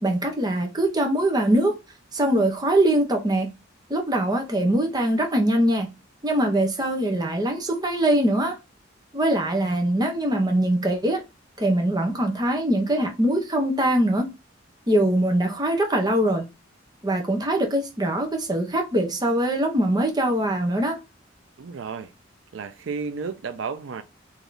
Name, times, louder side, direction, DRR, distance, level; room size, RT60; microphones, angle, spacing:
voice 1, 0.0-1.8 2.1-3.5 3.9-5.9 6.2-8.6 9.1-11.2 11.6-14.3 14.9-16.5 17.0-21.0, right 1 dB, 20° right, 1.0 m, -22 dB
voice 2, 21.6-22.1 22.5-24.0, right 5 dB, 80° right, 0.4 m, -32 dB
3.4 x 3.0 x 3.9 m
head